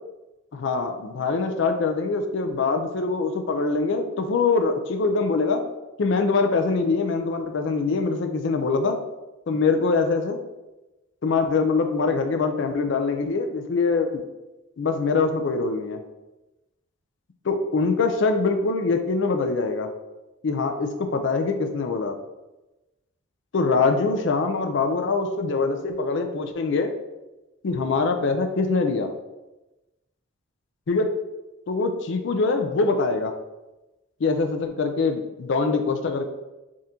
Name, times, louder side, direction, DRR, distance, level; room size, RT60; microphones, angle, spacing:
voice 1, 0.5-5.6 6.0-9.0 9.5-10.4 11.2-14.2 14.8-16.0 17.4-19.9 20.4-22.1 23.5-26.9 27.6-29.1 30.9-31.1 31.7-33.3 34.2-36.2, left 4 dB, 60° left, 6 dB, 0.4 m, -23 dB
3.6 x 2.5 x 4.2 m, 1.0 s
head